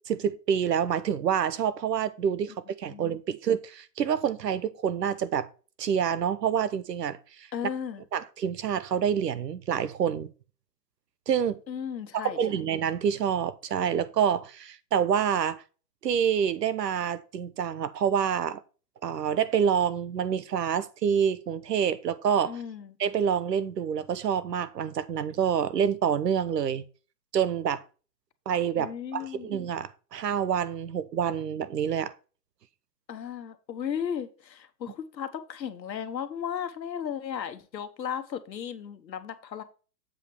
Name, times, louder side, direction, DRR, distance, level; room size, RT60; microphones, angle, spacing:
voice 1, 0.1-5.5 5.8-7.5 8.1-10.3 11.3-11.6 12.1-15.6 16.0-18.6 19.0-22.6 23.0-26.8 27.3-27.8 28.5-32.1, right 8 dB, 75° right, 0.9 m, -27 dB
voice 2, 7.5-8.0 11.7-12.4 22.5-22.9 28.7-29.5 33.1-39.6, left 8 dB, 85° left, 1.3 m, -35 dB
7.6 x 5.2 x 4.5 m
hypercardioid pair, 175°, 50 cm